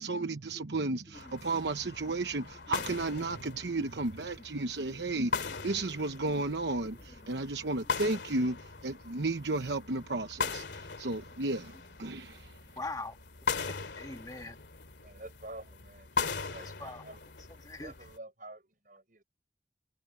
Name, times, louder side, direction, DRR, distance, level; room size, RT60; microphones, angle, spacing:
voice 1, 0.0-11.7 12.0-12.5, right 2 dB, 75° right, 1.0 m, -33 dB
sound 1, 1.1-18.2, left 5 dB, 85° left, 2.5 m, -40 dB
voice 2, 12.8-13.2 13.6-14.6 16.8-17.0 17.6-17.9, left 2 dB, 20° left, 1.5 m, -41 dB
voice 3, 15.0-17.3 17.8-19.2, right 2 dB, 50° right, 6.9 m, -49 dB
head